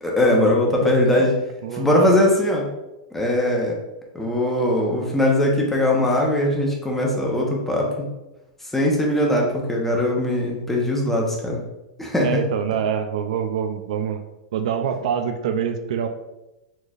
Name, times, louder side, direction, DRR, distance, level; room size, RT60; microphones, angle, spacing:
voice 1, 0.0-1.3 1.7-2.7 3.1-3.8 4.1-8.1 8.6-11.6 12.0-12.4, left 1 dB, 5° left, -2 dB, 0.8 m, -20 dB
voice 2, 0.8-1.3 1.6-2.1 12.2-14.2 14.5-16.1, right 7 dB, 75° right, 8 dB, 0.4 m, -25 dB
4.3 x 3.2 x 2.4 m, 0.97 s
supercardioid pair, 130°, 4 cm